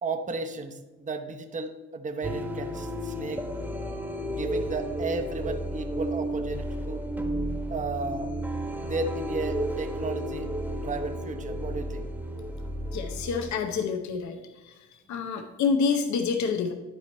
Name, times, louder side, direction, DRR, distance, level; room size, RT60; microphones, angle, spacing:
voice 1, 0.0-3.5 4.2-7.1 7.7-8.3 8.8-12.1, right 3 dB, 25° right, 4 dB, 0.9 m, -34 dB
sound 1, 2.2-13.5, right 1 dB, 5° right, 1.3 m, -32 dB
voice 2, 12.9-14.4 14.6-16.7, left 5 dB, 70° left, 6 dB, 0.8 m, -28 dB
11.0 x 4.6 x 4.2 m, 1.2 s
cardioid pair, 90°, 30 cm